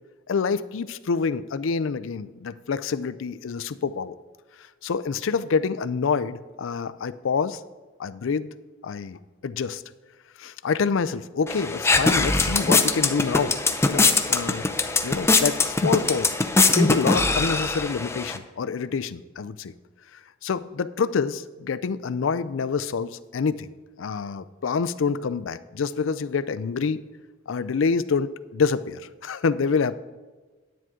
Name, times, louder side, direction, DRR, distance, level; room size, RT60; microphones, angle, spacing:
voice 1, 0.3-4.2 4.8-7.6 8.0-8.5 8.8-9.8 10.4-13.5 13.9-14.7 15.0-16.3 16.7-19.7 20.4-23.7 24.0-27.0 27.5-30.0, left 5 dB, 75° left, 14 dB, 0.4 m, -27 dB
sound 1, 11.5-18.4, left 3 dB, 15° left, 0.5 m, -22 dB
10.0 x 9.2 x 3.7 m, 1.3 s
head